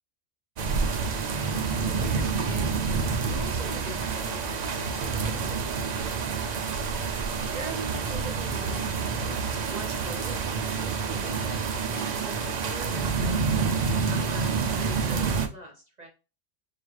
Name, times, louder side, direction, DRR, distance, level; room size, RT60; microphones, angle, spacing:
sound 1, 0.6-15.5, right 5 dB, 70° right, 0.4 m, -28 dB
voice 1, 1.9-2.7 3.2-7.0 7.5-13.5 14.1-16.1, right 1 dB, 35° right, 1 dB, 0.8 m, -43 dB
4.8 x 2.4 x 3.2 m, 0.31 s
omnidirectional pair, 1.3 m